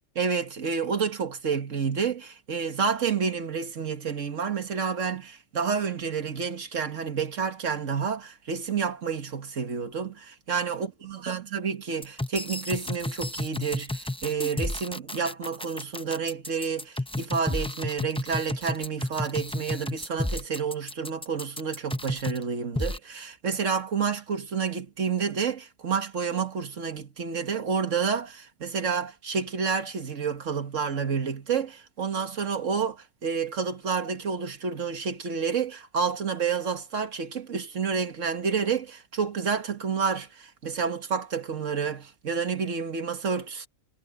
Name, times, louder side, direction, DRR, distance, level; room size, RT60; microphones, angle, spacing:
voice 1, 0.2-43.7, right 6 dB, 75° right, 1.9 m, -29 dB
sound 1, 12.0-22.4 22.8-23.0, left 1 dB, 10° left, 0.3 m, -32 dB
omnidirectional pair, 1.3 m